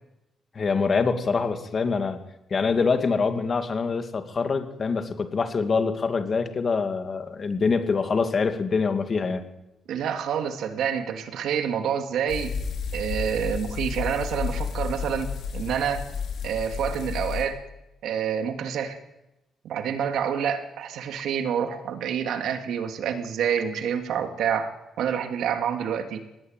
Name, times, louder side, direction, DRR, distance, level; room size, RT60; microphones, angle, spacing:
voice 1, 0.5-2.2 2.5-9.5, left 4 dB, 30° left, 8 dB, 2.3 m, -25 dB
voice 2, 9.9-12.5 12.9-16.0 16.4-17.6 18.0-19.0 19.6-24.7 25.0-26.2, right 8 dB, 70° right, 8 dB, 2.8 m, -27 dB
sound 1, 12.3-17.4, left 6 dB, 65° left, 5.1 m, -32 dB
25.0 x 19.5 x 9.1 m, 0.94 s
cardioid pair, 170°, 0 cm